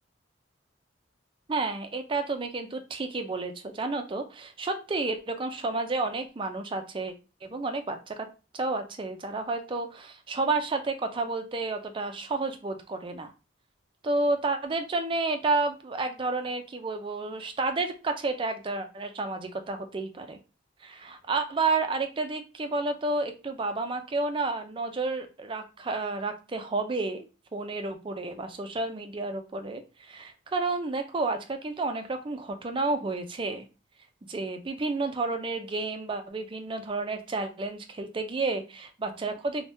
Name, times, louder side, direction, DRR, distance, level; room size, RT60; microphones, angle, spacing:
voice 1, 1.5-7.1 7.4-8.3 8.5-13.3 14.0-20.4 20.8-27.3 27.5-33.6 34.3-39.7, right 3 dB, 25° right, 6 dB, 0.4 m, -31 dB
2.7 x 2.1 x 3.4 m, 0.32 s
head